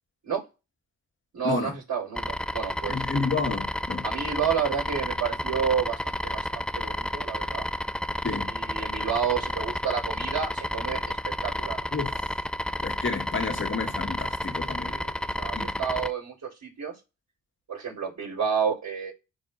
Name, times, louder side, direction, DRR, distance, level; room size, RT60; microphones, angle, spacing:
voice 1, 1.3-3.0 4.0-7.6 8.5-11.8 14.9-17.0 17.7-19.1, right 7 dB, 55° right, 4.3 m, -30 dB
sound 1, 2.2-16.1, left 1 dB, 5° left, 0.4 m, -31 dB
voice 2, 2.9-4.0 8.2-8.5 11.9-12.2 12.8-15.0 15.5-15.7, left 4 dB, 35° left, 1.9 m, -30 dB
10.0 x 3.5 x 2.7 m
hypercardioid pair, 45°, 33 cm